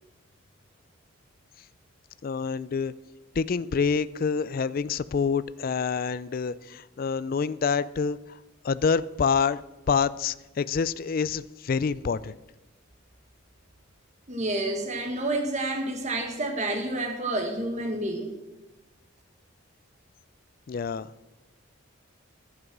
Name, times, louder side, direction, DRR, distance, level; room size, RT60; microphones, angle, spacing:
voice 1, 2.2-2.9 3.4-8.2 8.6-9.6 9.9-12.4 20.7-21.1, left 5 dB, 45° left, 17 dB, 0.3 m, -27 dB
voice 2, 14.3-18.4, right 2 dB, 35° right, 3 dB, 1.4 m, -29 dB
11.0 x 9.6 x 6.1 m, 1.0 s
head